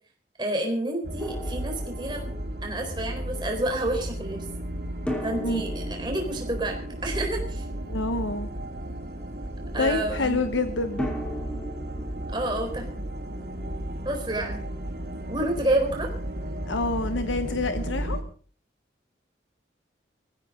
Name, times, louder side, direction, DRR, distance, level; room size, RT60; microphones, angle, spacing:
voice 1, 0.4-2.3 2.6-4.4 5.2-7.6 9.7-10.4 12.3-12.9 14.0-14.6 15.3-16.1, right 1 dB, 25° right, 3 dB, 4.0 m, -29 dB
sound 1, 1.0-18.2, right 1 dB, 60° right, 3.3 m, -34 dB
Drum, 1.2-2.6 5.1-8.0 11.0-13.8, equal, 5° left, 2.7 m, -37 dB
voice 2, 7.9-8.5 9.8-11.1 16.7-18.2, left 3 dB, 90° left, 8 dB, 1.1 m, -27 dB
20.0 x 15.0 x 3.8 m, 0.42 s
head